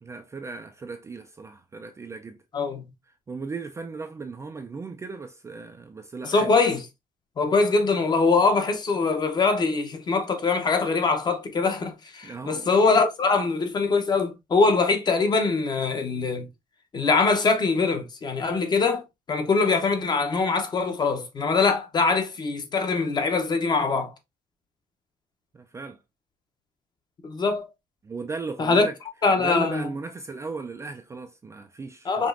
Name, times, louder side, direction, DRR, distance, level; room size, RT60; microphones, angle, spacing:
voice 1, 0.0-2.4 3.3-6.5 12.2-12.7 25.5-26.0 28.0-29.0 29.4-32.3, right 4 dB, 20° right, 0.4 m, -36 dB
voice 2, 2.5-2.9 6.2-6.9 7.4-16.5 16.9-24.1 27.2-27.7 28.6-28.9 29.2-29.9 32.0-32.3, left 4 dB, 30° left, 0.8 m, -23 dB
5.1 x 2.9 x 2.5 m
cardioid pair, 155°, 15 cm